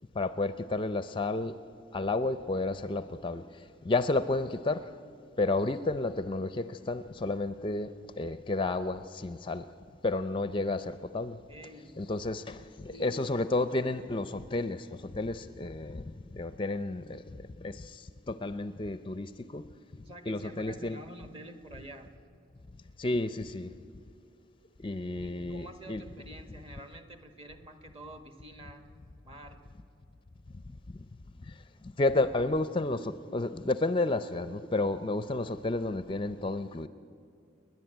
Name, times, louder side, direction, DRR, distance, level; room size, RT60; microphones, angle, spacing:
voice 1, 0.1-1.5 1.9-4.9 5.4-9.6 10.0-11.4 12.0-19.6 20.3-21.0 23.0-23.7 24.8-26.0 31.5-31.6 32.0-36.9, left 2 dB, 25° left, 0.5 m, -31 dB
voice 2, 11.5-11.9 12.9-13.3 20.0-22.1 25.2-28.9 29.2-29.6, right 1 dB, 30° right, 1.7 m, -48 dB
29.0 x 11.0 x 9.0 m
head